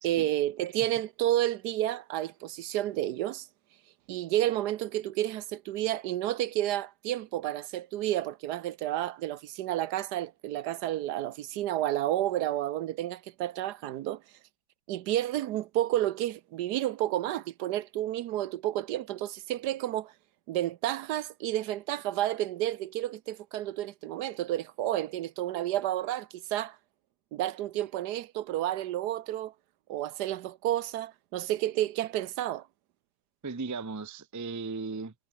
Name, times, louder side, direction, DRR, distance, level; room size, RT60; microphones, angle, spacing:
voice 1, 0.0-3.5 4.1-14.2 14.9-20.1 20.5-26.8 27.3-29.5 29.9-32.7, right 13 dB, 70° right, 1.1 m, -31 dB
voice 2, 33.4-35.1, right 4 dB, 25° right, 0.3 m, -37 dB
omnidirectional pair, 1.9 m